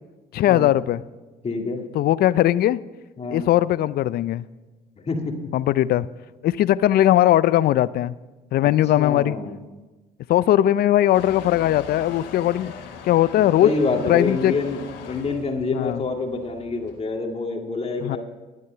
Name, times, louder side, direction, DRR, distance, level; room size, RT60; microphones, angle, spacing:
voice 1, 0.3-1.0 1.9-2.8 3.3-4.5 5.5-6.1 6.4-8.1 8.5-9.4 10.3-12.7 13.0-13.7 14.1-14.5 15.7-16.0 18.0-18.2, left 13 dB, 60° left, 18 dB, 0.4 m, -19 dB
voice 2, 1.4-1.8 3.2-3.5 5.1-5.3 9.0-9.6 13.4-14.8 15.1-18.2, left 3 dB, 35° left, 2 dB, 2.1 m, -26 dB
Motor vehicle (road) / Engine starting / Accelerating revving vroom, 11.1-17.0, left 6 dB, 80° left, 1.6 m, -40 dB
12.0 x 9.3 x 5.7 m, 1.2 s
supercardioid pair, 70°, 18 cm